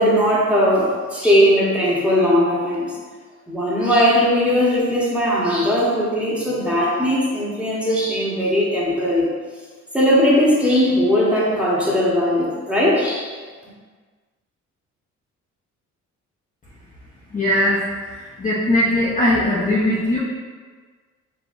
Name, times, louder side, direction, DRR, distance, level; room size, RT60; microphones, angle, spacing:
voice 1, 0.0-3.0 3.5-9.3 9.9-13.3, equal, 5° right, -7 dB, 1.2 m, -18 dB
voice 2, 17.3-20.2, left 1 dB, 25° left, -8 dB, 0.9 m, -20 dB
4.8 x 3.1 x 2.6 m, 1.5 s
cardioid pair, 90°, 30 cm